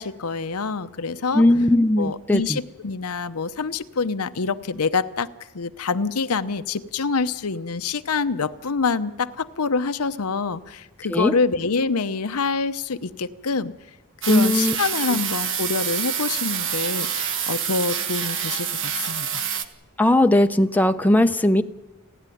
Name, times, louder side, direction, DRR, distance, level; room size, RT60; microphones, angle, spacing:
voice 1, 0.0-1.4 2.0-5.3 5.5-13.7 14.3-19.4, left 4 dB, 75° left, 11 dB, 0.8 m, -26 dB
voice 2, 1.3-2.6 11.1-11.3 14.3-14.8 15.1-15.2 20.0-21.6, left 1 dB, 5° left, 7 dB, 0.6 m, -18 dB
sound 1, 14.2-19.6, right 8 dB, 60° right, 1.3 m, -27 dB
29.5 x 11.0 x 9.3 m, 1.1 s
head